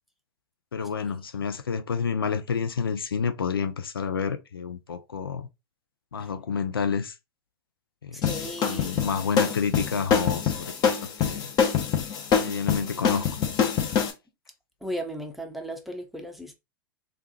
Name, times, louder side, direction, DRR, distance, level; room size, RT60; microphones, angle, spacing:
voice 1, 0.7-5.5 6.1-7.1 8.0-8.3 8.6-11.5 12.4-13.7, left 6 dB, 85° left, 0.5 m, -29 dB
voice 2, 8.1-9.1 14.8-16.5, equal, ahead, 0.7 m, -36 dB
sound 1, 8.2-14.1, left 7 dB, 35° left, 1.0 m, -25 dB
3.4 x 2.5 x 3.1 m
hypercardioid pair, 100°, 12 cm